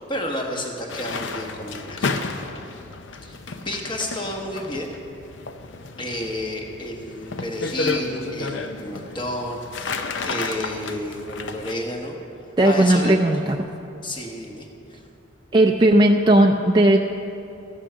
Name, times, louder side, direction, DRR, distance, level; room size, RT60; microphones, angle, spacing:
voice 1, 0.0-2.2 3.2-3.4 3.6-4.9 6.0-12.2 12.6-13.2 14.0-15.0, left 1 dB, 25° left, 1 dB, 1.2 m, -31 dB
sound 1, 0.9-11.7, left 3 dB, 65° left, 0.7 m, -32 dB
voice 2, 12.6-13.7 15.5-17.0, right 1 dB, 20° right, 1 dB, 0.4 m, -16 dB
14.0 x 8.9 x 5.7 m, 2.8 s
head